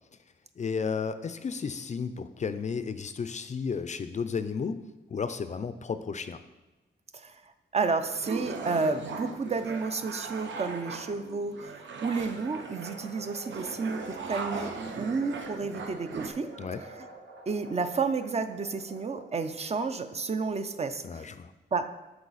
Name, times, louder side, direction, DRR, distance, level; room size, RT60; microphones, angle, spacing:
voice 1, 0.6-6.4 16.6-16.8 21.0-21.5, left 5 dB, 40° left, 11 dB, 0.4 m, -33 dB
voice 2, 7.7-16.5 17.5-21.3 21.7-21.9, right 4 dB, 35° right, 9 dB, 0.5 m, -31 dB
sound 1, 8.0-16.3, right 4 dB, 90° right, 0.9 m, -39 dB
sound 2, 12.8-21.1, right 3 dB, 70° right, 1.3 m, -49 dB
13.0 x 4.8 x 4.0 m, 1.1 s
wide cardioid pair, 160°, 19 cm